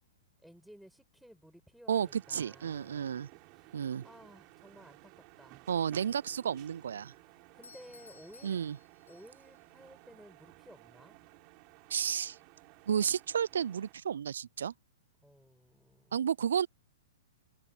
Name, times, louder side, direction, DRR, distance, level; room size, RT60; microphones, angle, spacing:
voice 1, 0.4-3.2 3.5-5.6 7.2-8.6 9.1-11.2 15.2-16.2, equal, ahead, 7.8 m, -56 dB
sound 1, 1.9-13.9, right 31 dB, 40° right, 4.9 m, -57 dB
voice 2, 1.9-3.3 3.7-4.0 5.7-7.1 8.4-8.8 11.9-12.4 12.9-14.7 16.1-16.7, right 8 dB, 70° right, 0.3 m, -32 dB
Doorbell, 7.6-9.6, left 5 dB, 80° left, 3.3 m, -58 dB
open air
figure-of-eight pair, 110°, 0 cm